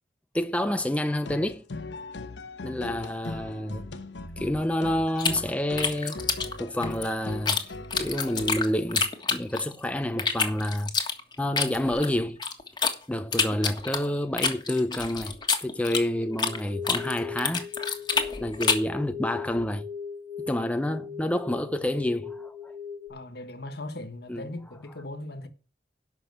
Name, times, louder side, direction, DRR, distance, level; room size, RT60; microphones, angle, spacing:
voice 1, 0.3-1.6 2.6-3.9 4.4-6.2 6.6-7.6 7.9-10.9 11.4-12.4 13.1-15.4 15.6-17.7 18.4-19.8 20.5-22.7 24.3-24.5, left 1 dB, 10° left, 0.5 m, -28 dB
sound 1, 1.2-8.7, left 2 dB, 80° left, 1.1 m, -39 dB
sound 2, 5.2-7.6 7.9-9.8 10.2-12.9 13.3-16.6 16.8-18.9, left 5 dB, 25° left, 1.5 m, -27 dB
sound 3, 16.1-23.1, left 6 dB, 15° right, 1.7 m, -39 dB
voice 2, 20.8-21.3 23.1-25.5, left 1 dB, 65° left, 1.5 m, -39 dB
11.0 x 6.1 x 7.8 m
head